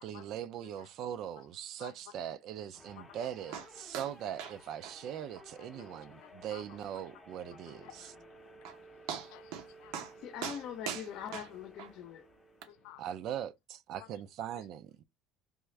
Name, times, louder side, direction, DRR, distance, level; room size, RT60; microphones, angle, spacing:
voice 1, 0.0-8.1 13.0-15.0, right 10 dB, 50° right, 0.4 m, -41 dB
sound 1, 2.7-13.1, equal, 10° left, 0.7 m, -56 dB
sound 2, 3.5-3.7 3.9-4.1 4.4-4.6 4.8-4.9 5.4-5.5 5.9-6.0 6.4-6.5 8.2-8.3 8.6-8.8 9.1-9.7 9.9-10.1 10.4-11.9 12.6-12.7, right 8 dB, 85° right, 0.8 m, -40 dB
voice 2, 6.1-6.6 7.7-8.1 9.2-10.0 12.7-13.0 13.9-14.1, left 14 dB, 85° left, 0.3 m, -53 dB
voice 3, 10.2-12.3, left 9 dB, 55° left, 0.7 m, -42 dB
3.5 x 2.5 x 3.2 m
cardioid pair, 160°, 0 cm